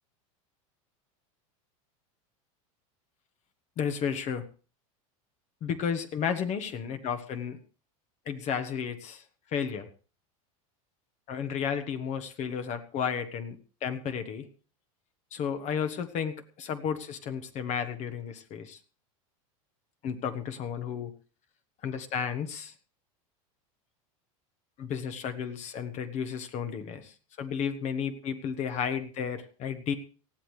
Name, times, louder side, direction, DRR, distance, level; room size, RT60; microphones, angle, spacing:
voice 1, 3.8-4.4 5.6-7.6 8.3-9.2 9.5-9.9 11.3-13.6 13.8-14.5 15.3-18.8 20.0-21.1 21.8-22.7 24.8-29.9, left 7 dB, 40° left, 8 dB, 1.3 m, -33 dB
19.0 x 14.0 x 3.3 m, 0.37 s
supercardioid pair, 120°, 18 cm